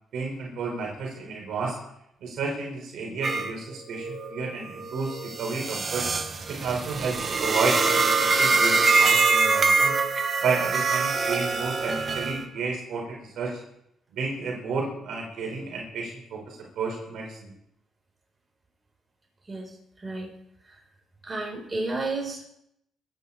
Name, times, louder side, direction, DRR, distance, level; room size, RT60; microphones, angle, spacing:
voice 1, 0.1-1.8 2.2-6.1 6.5-9.9 10.4-13.6 14.1-17.5, right 4 dB, 75° right, -1 dB, 4.7 m, -31 dB
sound 1, 3.2-3.5 3.9-12.4, right 4 dB, 40° right, 1.8 m, -24 dB
voice 2, 21.3-22.4, right 2 dB, 25° right, -2 dB, 7.7 m, -31 dB
23.0 x 9.9 x 4.3 m, 0.77 s
cardioid pair, 90°, 0 cm